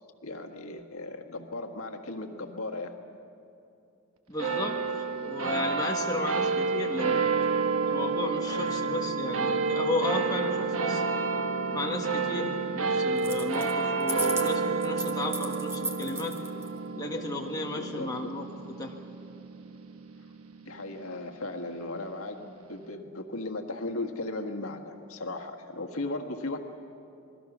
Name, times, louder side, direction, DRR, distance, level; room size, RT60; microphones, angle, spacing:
voice 1, 0.2-3.0 5.2-5.9 17.7-18.3 20.6-26.6, left 2 dB, 80° left, 4 dB, 1.6 m, -37 dB
voice 2, 4.3-4.8 5.2-7.2 7.8-11.0 11.7-16.3 17.0-18.5 18.8-18.9, left 2 dB, 15° left, 0 dB, 1.6 m, -34 dB
sound 1, 4.4-21.1, right 4 dB, 80° right, 1.2 m, -30 dB
sound 2, 13.2-13.7 14.0-16.7, right 2 dB, 10° right, 1.2 m, -35 dB
28.0 x 21.5 x 6.1 m, 2.7 s
head